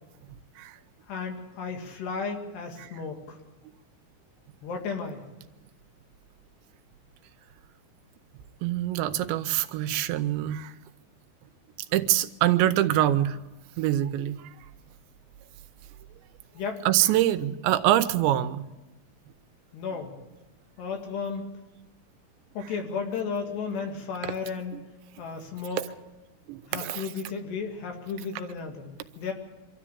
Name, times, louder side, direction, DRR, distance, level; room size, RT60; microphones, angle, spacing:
voice 1, 1.1-3.4 4.6-5.2 16.6-16.8 19.7-20.1 20.8-21.4 22.6-24.8 25.2-25.8 26.7-29.3, left 5 dB, 70° left, 3 dB, 4.2 m, -34 dB
voice 2, 8.6-10.7 11.9-13.4 13.8-14.5 16.9-18.7 24.7-24.8 25.8-25.9 26.5-27.1, right 13 dB, 90° right, 10 dB, 3.1 m, -25 dB
25.0 x 13.5 x 8.6 m, 1.1 s
omnidirectional pair, 5.0 m